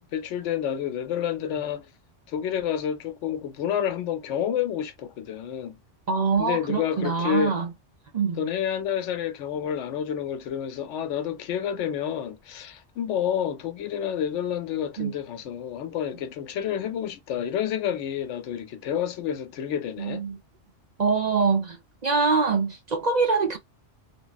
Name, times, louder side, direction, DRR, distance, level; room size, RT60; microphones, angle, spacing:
voice 1, 0.0-1.9 2.3-5.8 6.4-7.6 8.4-20.2, left 9 dB, 85° left, 0.9 m, -29 dB
voice 2, 6.1-7.7 8.1-8.4 15.0-15.1 20.0-20.4 21.0-21.8 22.0-23.6, right 5 dB, 50° right, 0.6 m, -24 dB
3.4 x 2.1 x 2.3 m
omnidirectional pair, 1.2 m